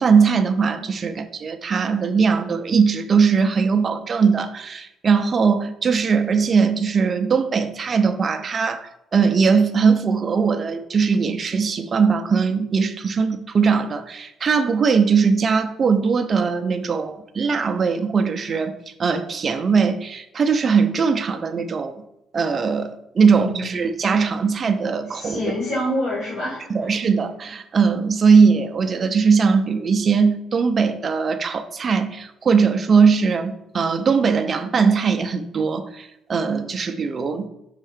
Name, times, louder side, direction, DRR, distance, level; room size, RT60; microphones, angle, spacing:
voice 1, 0.0-18.7 19.0-22.0 22.3-25.4 26.7-37.5, right 5 dB, 30° right, 8 dB, 0.5 m, -20 dB
voice 2, 23.3-23.7 25.1-26.7, left 1 dB, 40° left, -9 dB, 2.1 m, -26 dB
5.5 x 3.7 x 4.9 m, 0.86 s
cardioid pair, 165°, 0 cm